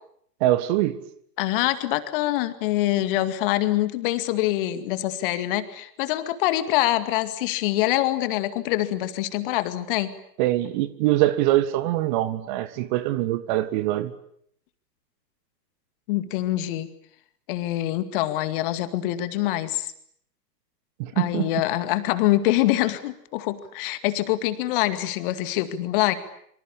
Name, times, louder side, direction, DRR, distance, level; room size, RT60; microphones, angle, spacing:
voice 1, 0.4-1.0 10.4-14.1 21.0-21.5, right 15 dB, 30° right, 1.6 m, -23 dB
voice 2, 1.4-10.2 16.1-16.9 17.5-19.9 21.2-26.1, left 15 dB, 30° left, 2.2 m, -25 dB
26.5 x 25.5 x 8.6 m
figure-of-eight pair, 115°, 49 cm